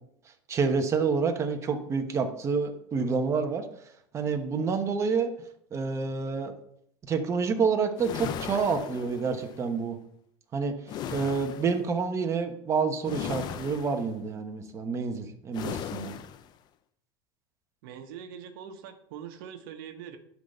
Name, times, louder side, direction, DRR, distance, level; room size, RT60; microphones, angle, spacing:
voice 1, 0.5-3.7 4.1-5.3 5.7-6.5 7.1-10.0 10.5-10.8 11.1-16.1, right 5 dB, 25° right, 5 dB, 1.2 m, -28 dB
sound 1, 8.0-9.6 10.9-11.8 13.0-14.1 15.5-16.5, left 9 dB, 40° left, 0.5 m, -37 dB
voice 2, 17.8-20.2, right 8 dB, 75° right, 6 dB, 1.2 m, -43 dB
11.0 x 4.1 x 6.8 m, 0.71 s
supercardioid pair, 145°, 11 cm